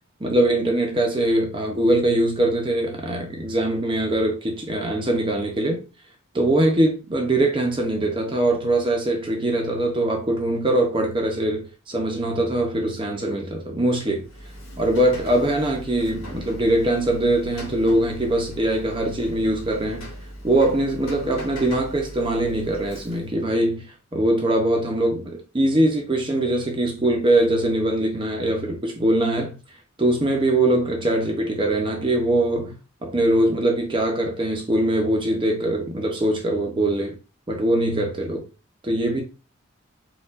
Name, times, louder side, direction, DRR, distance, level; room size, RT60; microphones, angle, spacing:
voice 1, 0.2-5.8 6.3-14.2 14.8-20.1 20.4-23.9 24.1-29.6 30.0-32.7 33.0-37.2 37.5-38.5 38.8-39.2, right 1 dB, 25° right, 0.6 m, -22 dB
Rain, 14.2-23.4, equal, 80° left, 1.5 m, -39 dB
4.4 x 2.3 x 2.4 m
head